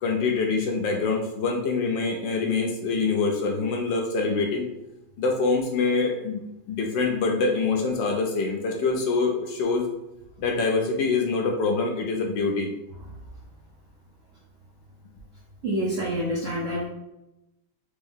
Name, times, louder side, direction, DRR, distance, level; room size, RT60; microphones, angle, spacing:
voice 1, 0.0-4.7 5.2-6.4 6.7-9.9 10.4-12.7, left 4 dB, 75° left, 1 dB, 1.2 m, -25 dB
voice 2, 15.6-16.9, equal, 70° right, -5 dB, 0.7 m, -27 dB
4.5 x 2.6 x 3.5 m, 0.92 s
omnidirectional pair, 2.3 m